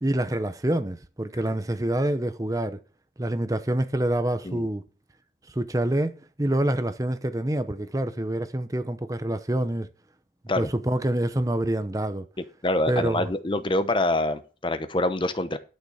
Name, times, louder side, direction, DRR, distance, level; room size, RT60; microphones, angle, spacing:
voice 1, 0.0-2.8 3.2-4.8 5.5-9.9 10.6-12.2 12.9-13.3, right 1 dB, 20° right, 0.7 m, -26 dB
voice 2, 12.6-15.6, left 2 dB, 30° left, 0.8 m, -25 dB
11.5 x 6.6 x 4.9 m
head